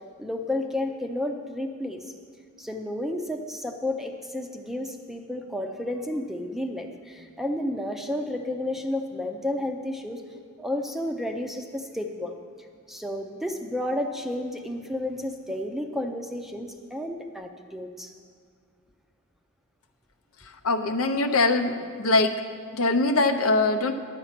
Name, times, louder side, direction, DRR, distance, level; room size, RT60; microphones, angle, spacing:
voice 1, 0.2-2.1 2.6-10.2 10.6-12.3 12.9-18.1, left 1 dB, ahead, 4 dB, 0.5 m, -31 dB
voice 2, 20.4-22.3 22.7-23.9, left 2 dB, 75° left, 7 dB, 0.7 m, -23 dB
11.0 x 8.1 x 5.9 m, 2.1 s
head